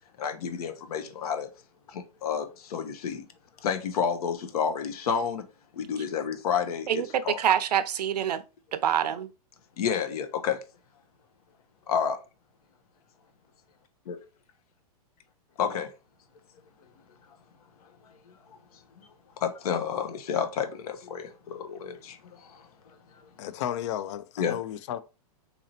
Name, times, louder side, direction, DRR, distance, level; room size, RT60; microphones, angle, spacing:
voice 1, 0.2-1.5 1.9-3.2 3.6-5.4 5.7-7.4 9.8-10.6 11.9-12.2 14.1-14.2 15.6-15.9 19.0-19.1 19.4-22.7 24.4-24.6, left 7 dB, 70° left, 0.8 m, -30 dB
voice 2, 6.9-8.4 8.7-9.3, right 9 dB, 85° right, 0.5 m, -26 dB
voice 3, 23.4-25.0, left 11 dB, 50° left, 0.4 m, -33 dB
4.1 x 2.7 x 2.7 m
hypercardioid pair, 140°, 20 cm